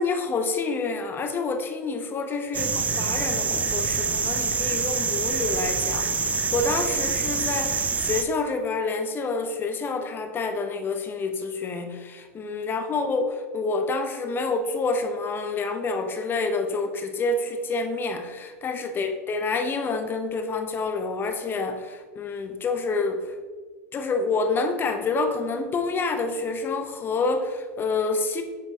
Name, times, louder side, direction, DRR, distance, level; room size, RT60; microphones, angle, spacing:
voice 1, 0.0-23.2 23.9-28.4, left 3 dB, 25° left, 6 dB, 0.6 m, -28 dB
sound 1, 2.5-8.2, right 5 dB, 15° right, 0.4 m, -26 dB
6.8 x 4.4 x 3.4 m, 1.5 s
hypercardioid pair, 110°, 9 cm